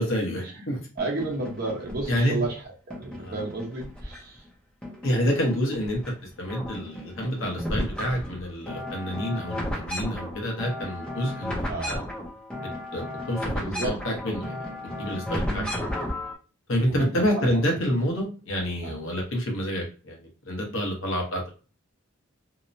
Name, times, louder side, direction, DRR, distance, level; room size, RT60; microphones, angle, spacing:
voice 1, 0.0-0.8 2.1-2.4 3.2-3.3 5.0-6.0 6.4-12.0 12.9-15.8 16.7-21.5, equal, 70° left, 0 dB, 0.9 m, -28 dB
sound 1, 1.0-2.5 2.9-4.5 4.8-6.1 6.4-16.3, left 1 dB, 5° left, 0.5 m, -34 dB
voice 2, 1.0-2.6 2.9-4.4 11.7-12.1 13.6-13.9 15.4-15.7 16.9-17.6 18.8-19.0, right 2 dB, 50° right, -1 dB, 0.8 m, -32 dB
2.8 x 2.0 x 2.6 m, 0.35 s
head